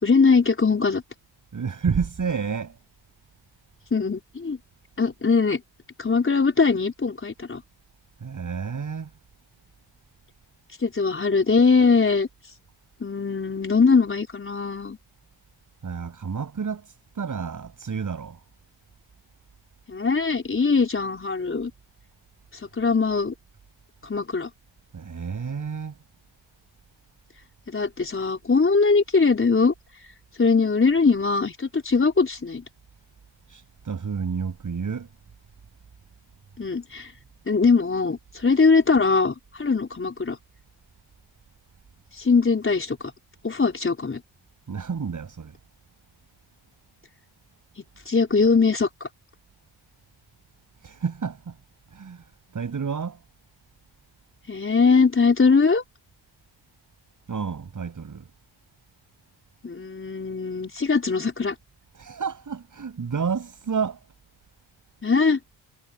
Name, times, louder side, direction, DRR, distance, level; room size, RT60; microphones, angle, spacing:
voice 1, 0.0-1.0 3.9-4.6 5.0-5.6 6.0-7.6 10.8-12.3 13.0-15.0 19.9-21.7 22.8-23.3 24.0-24.5 27.7-29.7 30.4-32.6 36.6-37.1 37.5-40.4 42.2-43.0 43.4-44.2 48.1-49.1 54.5-55.8 59.6-61.5 65.0-65.4, left 4 dB, 30° left, 4.7 m, -21 dB
voice 2, 1.5-2.8 8.2-9.1 15.8-18.4 24.9-26.0 33.5-35.1 44.7-45.5 50.8-51.6 51.9-53.2 57.3-58.3 61.9-64.0, right 6 dB, 50° right, 7.4 m, -30 dB
cardioid pair, 75°, 40 cm